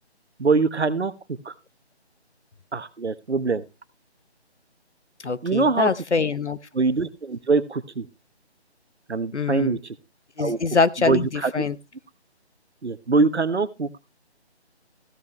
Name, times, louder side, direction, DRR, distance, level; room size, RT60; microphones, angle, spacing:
voice 1, 0.4-1.1 1.4-1.5 2.7-3.6 5.4-5.9 6.7-8.1 9.1-9.9 10.4-10.6 11.0-11.6 12.8-13.9, right 4 dB, 75° right, 14 dB, 1.2 m, -23 dB
voice 2, 5.2-6.6 9.3-9.8 10.4-11.7, left 4 dB, 85° left, 16 dB, 1.0 m, -24 dB
15.0 x 8.6 x 3.0 m, 0.25 s
figure-of-eight pair, 160°, 34 cm